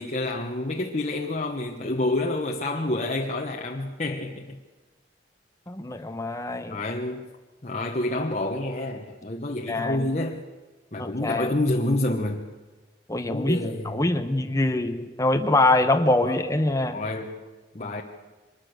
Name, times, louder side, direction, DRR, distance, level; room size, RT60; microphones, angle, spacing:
voice 1, 0.0-4.6 6.7-7.3 7.6-10.4 10.9-12.5 13.3-14.1 16.2-16.4 16.9-17.4 17.7-18.0, left 2 dB, 40° left, 0 dB, 1.3 m, -28 dB
voice 2, 5.7-6.8 9.7-10.1 11.0-11.5 13.1-13.6 13.8-17.0, left 2 dB, 20° left, 6 dB, 1.2 m, -24 dB
24.0 x 20.5 x 6.6 m, 1.2 s
head